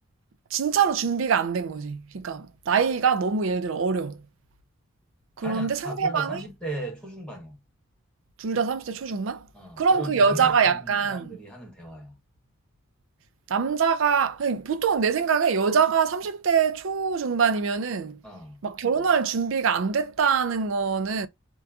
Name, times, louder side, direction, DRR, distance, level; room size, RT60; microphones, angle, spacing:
voice 1, 0.5-4.2 5.4-6.4 8.4-9.5 9.8-11.4 13.5-18.2 18.6-21.3, right 6 dB, 70° right, 0.4 m, -24 dB
voice 2, 5.4-7.6 9.5-10.5 10.8-12.2 18.2-18.6, right 1 dB, 5° left, 0.9 m, -37 dB
2.8 x 2.2 x 2.3 m
head